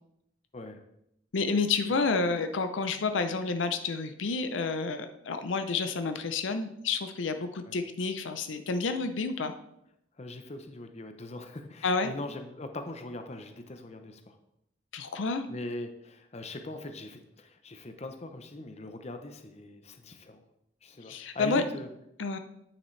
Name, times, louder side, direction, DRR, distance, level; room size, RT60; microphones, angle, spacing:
voice 1, 1.3-9.5 11.8-12.1 14.9-15.5 21.1-21.6 22.2-22.4, left 4 dB, 85° left, 8 dB, 0.6 m, -29 dB
voice 2, 10.2-14.4 15.5-20.4 20.8-21.9, left 2 dB, 35° left, 6 dB, 0.7 m, -41 dB
9.2 x 5.9 x 3.2 m, 0.79 s
head